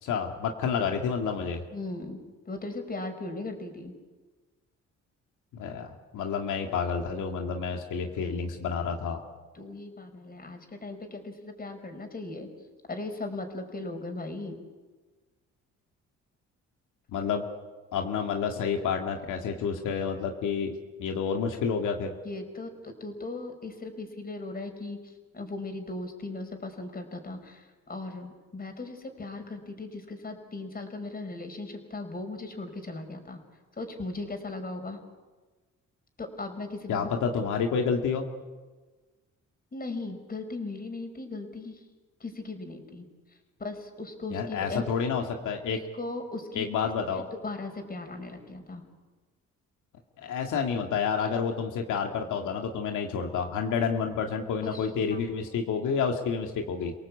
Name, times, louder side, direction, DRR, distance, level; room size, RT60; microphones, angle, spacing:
voice 1, 0.0-1.6 5.5-9.2 17.1-17.4 17.9-20.7 21.0-22.1 36.9-38.2 44.3-45.8 46.5-47.2 50.2-56.9, left 6 dB, 80° left, 3 dB, 2.2 m, -29 dB
voice 2, 1.7-2.2 2.4-3.9 9.5-12.5 12.9-14.6 22.2-33.4 33.8-35.0 36.2-37.1 39.7-41.8 42.2-43.1 43.6-44.8 45.9-46.7 47.1-48.8 54.7-55.2, left 2 dB, 30° left, 5 dB, 4.9 m, -38 dB
29.0 x 18.0 x 8.4 m, 1.3 s
cardioid pair, 90°, 30 cm